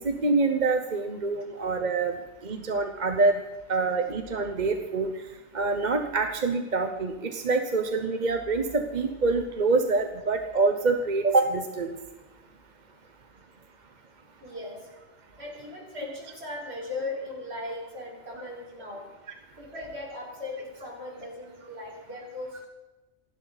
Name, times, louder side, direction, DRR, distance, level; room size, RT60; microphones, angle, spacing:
voice 1, 0.0-2.1 2.4-3.4 3.7-5.1 5.5-11.9, right 3 dB, 40° right, 6 dB, 1.0 m, -26 dB
voice 2, 14.4-14.9 15.4-19.1 19.6-22.6, left 2 dB, 65° right, -3 dB, 5.1 m, -38 dB
28.0 x 11.5 x 4.1 m, 1.2 s
omnidirectional pair, 1.2 m